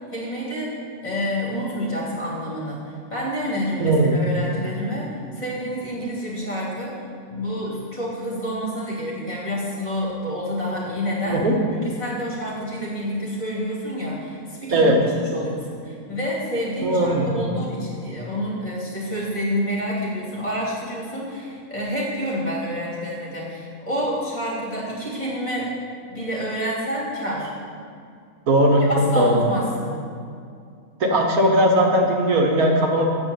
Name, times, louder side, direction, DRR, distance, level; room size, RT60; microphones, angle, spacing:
voice 1, 0.1-0.7 1.0-6.9 7.3-11.4 11.7-25.7 26.1-27.5 28.8-30.0, equal, 30° left, -6 dB, 3.0 m, -28 dB
voice 2, 3.8-4.2 11.3-11.5 14.7-15.0 16.8-17.4 28.5-28.8 29.1-29.4 31.0-33.1, right 1 dB, 90° right, 1 dB, 1.7 m, -18 dB
7.5 x 7.0 x 8.2 m, 2.4 s
omnidirectional pair, 1.5 m